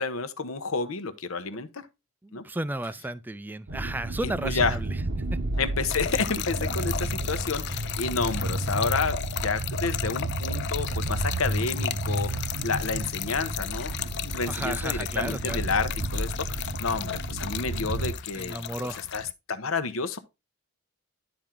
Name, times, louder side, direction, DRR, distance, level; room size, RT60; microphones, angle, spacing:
voice 1, 0.0-1.9 2.3-2.4 4.2-4.8 5.6-9.2 9.4-12.3 12.6-13.9 14.2-18.6 18.8-20.2, left 4 dB, 75° left, 0.9 m, -30 dB
voice 2, 2.2-4.9 5.3-5.4 14.5-15.6 18.3-19.0, right 1 dB, 10° right, 0.3 m, -33 dB
sound 1, 3.7-18.1, right 2 dB, 60° right, 0.8 m, -32 dB
Trickle dribble / Fill (with liquid), 5.9-19.3, left 10 dB, 55° left, 0.4 m, -35 dB
10.5 x 4.4 x 3.7 m
head